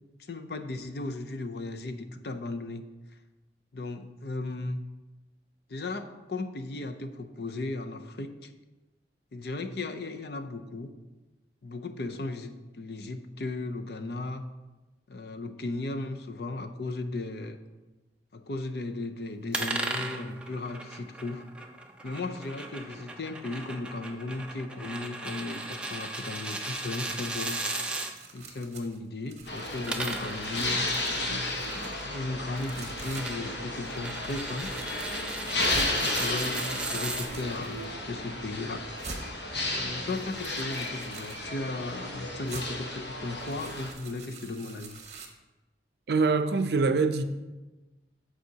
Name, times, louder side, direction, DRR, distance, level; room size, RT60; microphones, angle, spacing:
voice 1, 0.2-2.8 3.7-4.8 5.7-8.5 9.3-10.9 11.6-14.4 15.1-17.6 18.3-21.5 22.0-27.6 28.3-34.7 35.5-38.9 39.8-45.0, left 2 dB, 65° left, 0.6 m, -36 dB
sound 1, 19.5-28.1 29.6-37.3, right 2 dB, 5° right, 0.5 m, -37 dB
sound 2, 26.7-29.0 29.3-32.1 32.6-33.3 33.8-34.0 34.3-35.2 35.6-35.9 36.6-37.9 38.5-38.6 39.0-39.2 40.0-41.4 42.5-42.7 43.3-45.3, right 4 dB, 40° right, 1.0 m, -46 dB
sound 3, 29.5-43.9, left 2 dB, 80° left, 1.2 m, -33 dB
voice 2, 46.1-47.2, right 4 dB, 65° right, 0.5 m, -24 dB
14.0 x 4.9 x 2.8 m
head